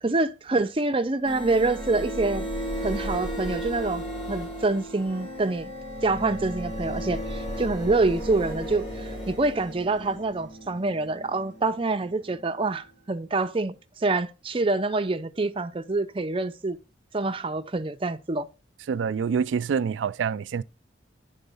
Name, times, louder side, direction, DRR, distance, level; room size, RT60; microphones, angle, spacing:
voice 1, 0.0-2.5 2.8-5.7 6.0-13.7 14.0-16.8 17.1-18.5, right 3 dB, 30° right, 0.6 m, -26 dB
sound 1, 1.2-12.8, equal, 35° left, 4.7 m, -35 dB
voice 2, 18.9-20.6, right 6 dB, 85° right, 0.3 m, -26 dB
10.5 x 3.8 x 5.4 m
head